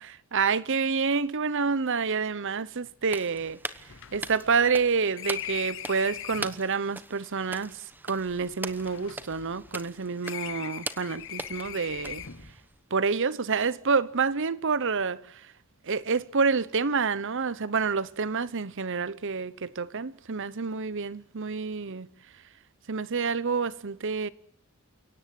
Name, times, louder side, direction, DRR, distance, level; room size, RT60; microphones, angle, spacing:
voice 1, 0.0-3.6 4.1-12.2 12.9-15.5 15.8-22.1 22.9-24.3, right 5 dB, 60° right, 0.9 m, -28 dB
sound 1, 2.5-2.6 2.9-3.0 3.3-6.6 7.5-9.9 10.2-12.6, left 11 dB, 65° left, 1.0 m, -41 dB
sound 2, 3.0-12.8, right 2 dB, 10° right, 1.0 m, -41 dB
29.5 x 17.5 x 7.7 m
head